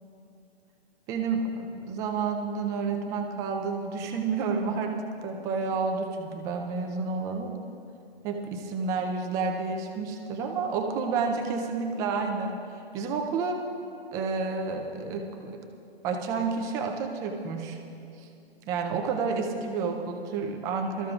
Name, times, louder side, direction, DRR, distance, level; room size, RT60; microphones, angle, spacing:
voice 1, 1.1-4.9 5.2-7.5 8.2-12.5 12.9-13.6 14.1-15.6 16.0-17.8 18.2-18.3 18.7-21.1, right 4 dB, 10° right, 2 dB, 0.4 m, -30 dB
24.0 x 13.5 x 2.4 m, 2.7 s
hypercardioid pair, 145°, 32 cm